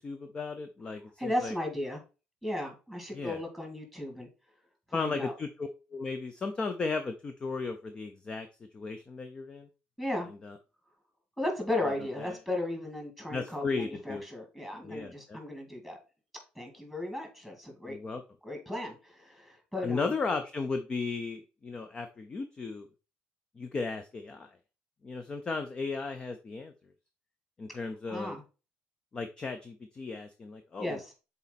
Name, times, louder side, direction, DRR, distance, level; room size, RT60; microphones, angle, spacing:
voice 1, 0.0-1.5 3.1-3.4 4.9-8.5 8.7-9.7 10.4-10.6 12.2-12.3 13.3-14.2 14.8-15.4 17.9-18.2 19.8-22.9 23.6-24.5 25.0-26.7 27.6-28.4 29.1-31.0, left 4 dB, 25° left, 7 dB, 0.6 m, -35 dB
voice 2, 1.2-2.0 2.4-4.3 4.9-5.3 10.0-10.3 11.4-16.0 16.6-18.0 18.4-20.1 28.1-28.4 30.8-31.1, left 1 dB, 5° left, 3 dB, 2.4 m, -35 dB
6.9 x 4.2 x 4.1 m, 0.32 s
cardioid pair, 145°, 4 cm